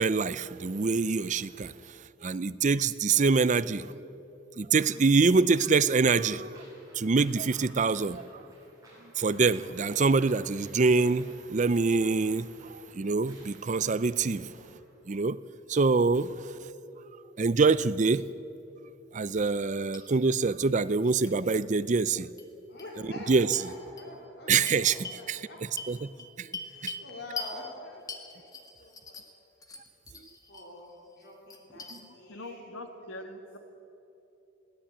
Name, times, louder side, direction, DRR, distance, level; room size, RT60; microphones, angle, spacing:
voice 1, 0.0-4.1 4.6-6.5 6.9-8.4 9.2-14.5 15.1-15.4 15.7-16.6 17.4-18.3 19.1-22.3 23.3-23.6 24.5-25.4 25.9-26.1 26.4-26.5 26.8-27.0 31.9-32.0, right 4 dB, 35° right, 0.5 m, -25 dB
sound 1, 4.8-15.0, right 1 dB, 20° right, 7.5 m, -57 dB
sound 2, 19.4-19.6 19.9-20.0 21.2-21.3 22.4-22.5 22.8-22.9 23.5-23.6 24.0-24.1 24.7-25.2 25.8-27.1 27.4-27.5 28.1-29.4 29.6-30.7 31.1-32.0, left 3 dB, 20° left, 1.7 m, -41 dB
voice 2, 22.7-25.6 26.6-28.5 28.8-29.2 30.5-32.6, left 2 dB, 55° left, 3.3 m, -45 dB
voice 3, 31.9-33.6, left 1 dB, 75° left, 1.7 m, -43 dB
21.5 x 18.0 x 8.8 m
head